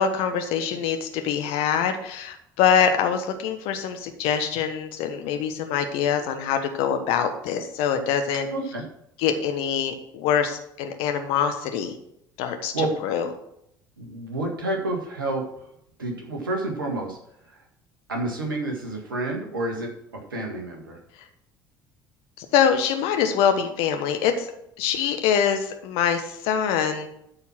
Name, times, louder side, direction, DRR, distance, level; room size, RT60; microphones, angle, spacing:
voice 1, 0.0-8.5 9.2-11.9 12.4-13.3 22.4-24.5 24.8-27.1, left 8 dB, 60° left, 7 dB, 1.3 m, -24 dB
voice 2, 8.5-8.8 12.7-12.9 14.0-15.7 16.0-17.2 17.4-17.6 18.1-21.0, right 2 dB, 80° right, 1 dB, 1.8 m, -29 dB
12.5 x 4.5 x 6.0 m, 0.75 s
figure-of-eight pair, 60°, 11 cm